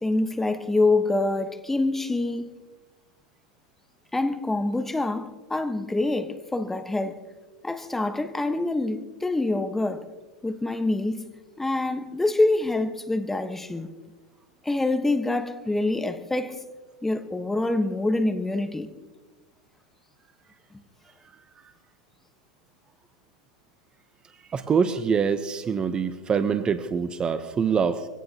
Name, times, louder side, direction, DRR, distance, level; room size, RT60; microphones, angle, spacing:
voice 1, 0.0-2.5 4.1-7.2 7.6-10.1 10.4-11.3 11.6-13.9 14.6-16.6 17.0-18.9, left 2 dB, 10° left, 1.3 m, -26 dB
voice 2, 24.5-28.1, right 6 dB, 25° right, 0.9 m, -25 dB
24.5 x 17.5 x 2.9 m
hypercardioid pair, 100°, 3 cm